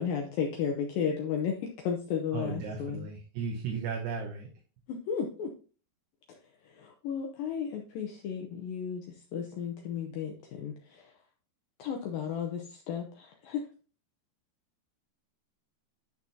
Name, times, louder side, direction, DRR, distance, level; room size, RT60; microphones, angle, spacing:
voice 1, 0.0-3.1 4.9-5.5 6.3-6.4 6.6-11.2 11.8-13.7, left 7 dB, 75° left, 2 dB, 2.1 m, -34 dB
voice 2, 2.3-4.5, right 5 dB, 75° right, 0 dB, 3.1 m, -35 dB
10.5 x 5.9 x 2.7 m, 0.37 s
omnidirectional pair, 4.9 m